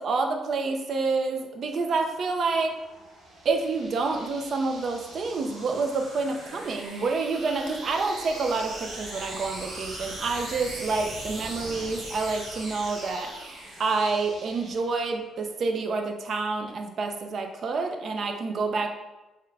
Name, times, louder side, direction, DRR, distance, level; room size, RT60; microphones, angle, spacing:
voice 1, 0.0-2.8 3.4-13.5 13.8-18.9, right 4 dB, 55° right, 4 dB, 0.4 m, -28 dB
sound 1, 1.8-15.2, right 1 dB, 75° right, 1.0 m, -41 dB
3.5 x 2.2 x 3.3 m, 1.1 s
cardioid pair, 90°, 0 cm